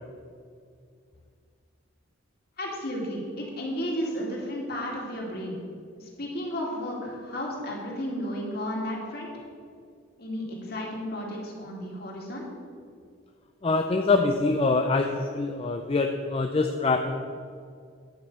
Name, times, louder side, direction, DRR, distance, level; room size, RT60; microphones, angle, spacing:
voice 1, 2.6-5.5 6.0-9.3 10.2-12.5, equal, 50° left, -2 dB, 2.4 m, -33 dB
voice 2, 13.6-17.3, left 3 dB, 30° left, 4 dB, 0.4 m, -25 dB
10.5 x 5.5 x 7.8 m, 2.2 s
head